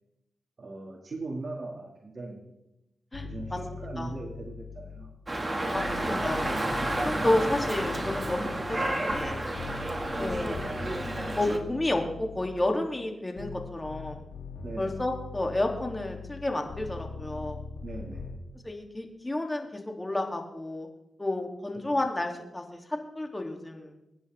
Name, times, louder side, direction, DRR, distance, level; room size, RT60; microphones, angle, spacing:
voice 1, 0.6-2.5 3.2-5.1 5.4-5.7 14.6-14.9 17.8-18.3 21.7-21.8, right 2 dB, 50° right, 1 dB, 2.4 m, -39 dB
sound 1, 3.1-5.3 5.7-12.9 13.4-18.4, left 4 dB, 85° left, 3.0 m, -41 dB
voice 2, 3.8-4.1 5.7-6.4 7.0-9.4 10.2-10.6 11.3-14.2 14.8-17.6 18.6-20.9 21.2-23.9, left 1 dB, 20° left, 2 dB, 3.0 m, -31 dB
Dog, 5.3-11.6, right 1 dB, 30° right, 2.2 m, -31 dB
24.0 x 10.0 x 3.6 m, 0.93 s
cardioid pair, 60°, 0 cm